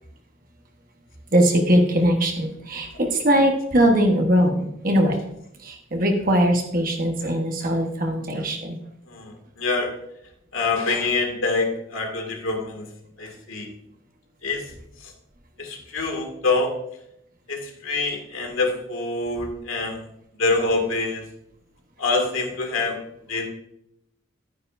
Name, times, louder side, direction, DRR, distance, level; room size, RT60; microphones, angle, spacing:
voice 1, 1.3-5.2 5.6-8.8, equal, 45° right, 2 dB, 1.2 m, -20 dB
voice 2, 9.1-9.9 10.5-12.9 13.2-13.7 14.4-14.7 15.0-15.1 15.6-16.7 17.5-20.1 20.4-21.3 22.0-23.0 23.3-23.5, left 3 dB, 85° left, 3 dB, 2.1 m, -25 dB
11.5 x 9.4 x 2.6 m, 0.77 s
head